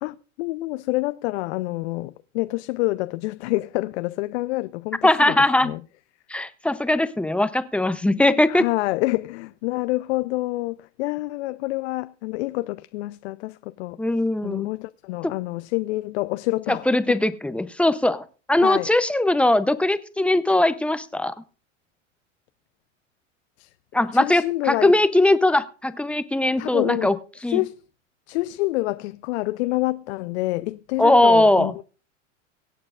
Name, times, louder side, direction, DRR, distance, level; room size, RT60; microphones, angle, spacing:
voice 1, 0.0-5.3 5.6-5.8 8.5-14.0 14.4-16.9 18.6-18.9 23.6-23.7 24.1-24.9 26.6-27.1 27.5-27.8 28.3-31.8, left 20 dB, 60° left, 0.6 m, -27 dB
voice 2, 5.0-5.7 6.3-8.6 14.0-14.7 15.2-15.3 16.7-21.3 23.9-27.2 27.4-27.6 31.0-31.7, left 1 dB, 5° left, 0.6 m, -20 dB
23.5 x 8.7 x 2.4 m
hypercardioid pair, 105°, 37 cm